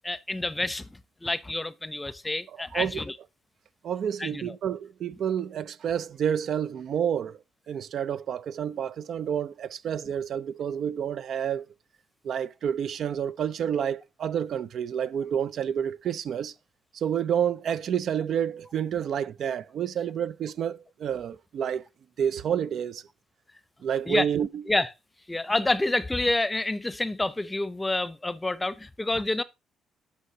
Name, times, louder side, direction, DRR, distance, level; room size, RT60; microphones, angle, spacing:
voice 1, 0.0-3.2 4.2-4.6 24.1-24.3 24.7-24.9 25.3-29.4, left 2 dB, 15° left, 0.7 m, -28 dB
voice 2, 2.7-3.0 3.8-7.4 7.7-11.7 12.2-16.5 16.9-21.8 22.2-23.0 23.8-24.6, right 8 dB, 65° right, 0.5 m, -29 dB
11.0 x 6.9 x 2.8 m
cardioid pair, 90°, 0 cm